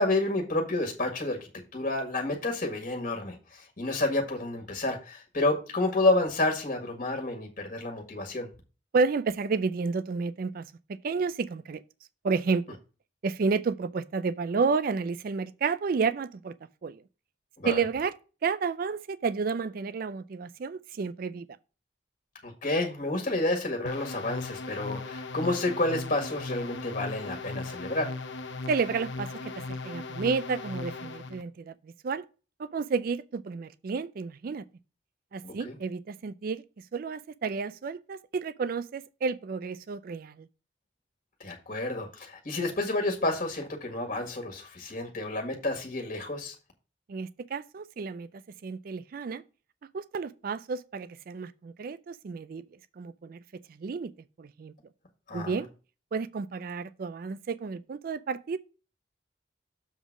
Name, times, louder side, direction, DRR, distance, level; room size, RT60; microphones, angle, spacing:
voice 1, 0.0-8.5 17.6-17.8 22.4-28.1 35.4-35.7 41.4-46.5 55.3-55.6, left 2 dB, 45° left, 1.8 m, -30 dB
voice 2, 8.9-11.8 12.2-12.8 13.2-16.5 16.8-17.0 17.6-18.1 18.4-21.5 28.7-32.2 32.6-34.6 35.3-36.6 36.9-40.5 47.1-49.4 49.9-52.6 53.0-53.4 53.7-54.1 54.4-54.7 55.3-55.7 56.1-58.6, right 5 dB, 50° right, 0.4 m, -31 dB
sound 1, 23.9-31.4, left 3 dB, 70° left, 0.8 m, -38 dB
7.1 x 3.9 x 6.0 m
head